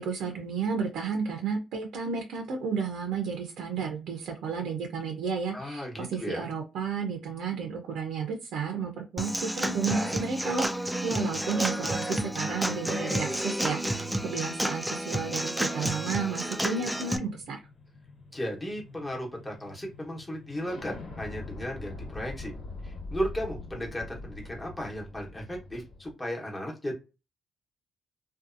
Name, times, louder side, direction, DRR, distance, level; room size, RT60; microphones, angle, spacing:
voice 1, 0.0-10.7 11.0-17.6, right 5 dB, 80° right, 3 dB, 0.5 m, -32 dB
voice 2, 5.5-6.5 18.3-22.5 22.8-26.9, equal, 15° left, -1 dB, 1.0 m, -35 dB
Human voice / Acoustic guitar / Drum, 9.2-17.2, right 1 dB, ahead, 0.3 m, -30 dB
sound 1, 16.3-26.1, left 3 dB, 55° left, 1.2 m, -44 dB
2.6 x 2.3 x 2.4 m, 0.28 s
cardioid pair, 90°, 0 cm